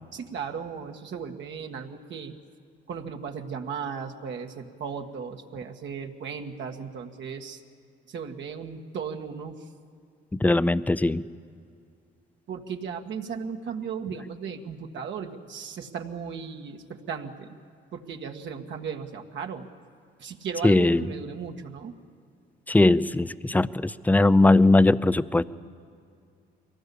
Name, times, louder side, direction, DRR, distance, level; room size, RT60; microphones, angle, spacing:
voice 1, 0.1-2.3 2.9-7.6 8.1-9.7 12.5-17.6 17.9-19.7 20.2-21.9, right 6 dB, 65° right, 3 dB, 1.7 m, -36 dB
voice 2, 10.3-11.2 20.6-21.1 22.7-25.4, left 2 dB, 10° left, 16 dB, 0.5 m, -20 dB
23.0 x 18.0 x 8.5 m, 2.4 s
cardioid pair, 90°, 20 cm